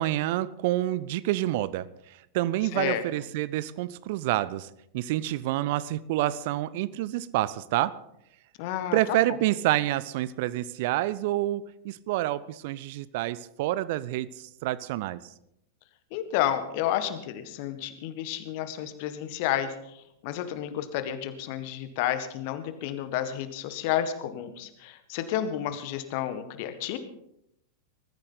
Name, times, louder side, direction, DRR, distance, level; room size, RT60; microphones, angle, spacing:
voice 1, 0.0-1.9 2.3-4.7 4.9-8.0 8.9-14.3 14.6-15.2, right 15 dB, 50° right, 18 dB, 0.6 m, -28 dB
voice 2, 2.7-3.0 8.6-9.2 16.1-19.7 20.2-27.0, left 11 dB, 45° left, 10 dB, 1.6 m, -31 dB
21.0 x 14.0 x 4.0 m, 0.80 s
figure-of-eight pair, 90°, 0 cm